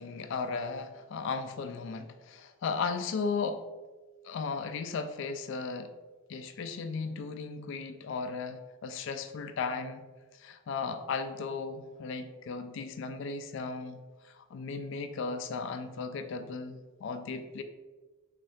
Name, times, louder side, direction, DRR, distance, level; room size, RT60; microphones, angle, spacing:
voice 1, 0.0-3.6 4.2-5.9 6.3-10.1 10.3-14.0 14.2-17.6, left 4 dB, 55° left, 9 dB, 0.3 m, -36 dB
3.8 x 3.3 x 2.7 m, 1.2 s
head